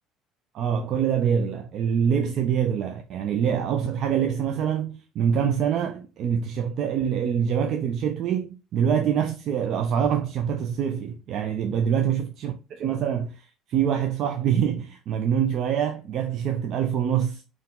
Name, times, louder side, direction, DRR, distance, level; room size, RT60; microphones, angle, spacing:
voice 1, 0.5-17.4, right 8 dB, 60° right, 0.6 m, -25 dB
4.4 x 3.1 x 3.7 m
hypercardioid pair, 65°, 0 cm